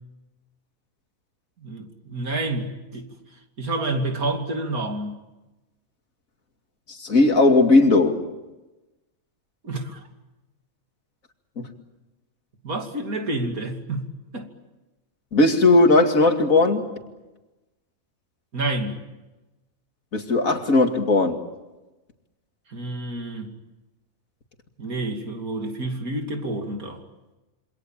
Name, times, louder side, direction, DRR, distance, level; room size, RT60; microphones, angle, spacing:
voice 1, 1.6-3.1 3.6-5.2 9.6-10.1 11.6-11.7 12.6-14.5 18.5-19.0 22.7-23.5 24.8-27.0, right 2 dB, 90° right, 4 dB, 3.2 m, -29 dB
voice 2, 6.9-8.2 11.6-11.7 15.3-16.9 20.1-21.4, left 2 dB, 70° left, 5 dB, 2.8 m, -17 dB
27.5 x 26.0 x 7.5 m, 1.1 s
omnidirectional pair, 1.5 m